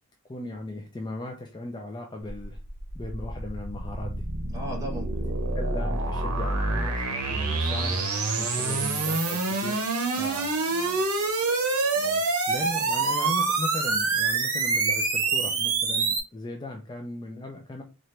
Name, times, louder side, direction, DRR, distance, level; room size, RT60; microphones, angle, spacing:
voice 1, 0.2-2.6 2.9-4.2 5.5-9.8 10.2-10.4 12.5-17.8, left 2 dB, 20° left, 2 dB, 0.4 m, -37 dB
sound 1, 2.3-16.2, right 3 dB, 75° right, 1.1 m, -26 dB
voice 2, 4.5-5.5 8.4-8.9 10.1-11.0 11.9-12.2, right 1 dB, 15° right, -2 dB, 1.4 m, -40 dB
4.3 x 2.6 x 3.2 m, 0.31 s
head